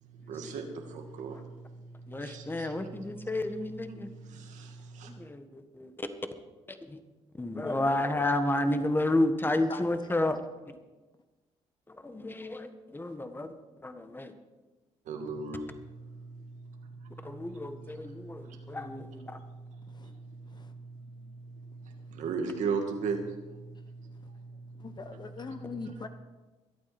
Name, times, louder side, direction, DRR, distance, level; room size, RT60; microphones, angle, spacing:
voice 1, 0.0-2.8 3.9-5.1 15.1-19.0 19.3-24.9, right 4 dB, 80° right, 4 dB, 2.2 m, -39 dB
voice 2, 2.1-4.1 5.0-6.1 6.8-7.0 7.4-10.4 11.9-13.5 13.8-14.3 17.2-19.4, left 1 dB, 15° left, 9 dB, 1.5 m, -31 dB
voice 3, 9.7-10.1 19.9-20.1 20.5-20.7 24.2-24.3 24.7-26.1, left 4 dB, 35° left, 9 dB, 1.0 m, -42 dB
23.5 x 8.8 x 4.4 m, 1.2 s
cardioid pair, 75°, 12 cm